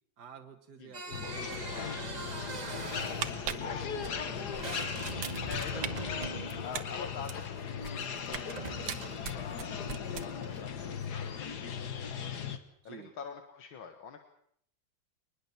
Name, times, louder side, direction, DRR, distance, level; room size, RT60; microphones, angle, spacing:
voice 1, 0.2-4.9 12.8-13.1, right 7 dB, 55° right, 3 dB, 1.9 m, -52 dB
sound 1, 0.9-7.5 8.3-9.3, right 2 dB, 20° right, 1.6 m, -42 dB
sound 2, 1.1-12.6, left 7 dB, 55° left, 1.9 m, -38 dB
sound 3, 3.2-4.7 5.0-5.9 6.2-8.5 8.9-10.6 10.9-11.1, right 9 dB, 80° right, 1.9 m, -40 dB
voice 2, 3.7-4.0 5.5-8.7 9.0-14.3, left 6 dB, 85° left, 6 dB, 2.3 m, -47 dB
23.5 x 20.0 x 7.1 m, 0.66 s
omnidirectional pair, 2.2 m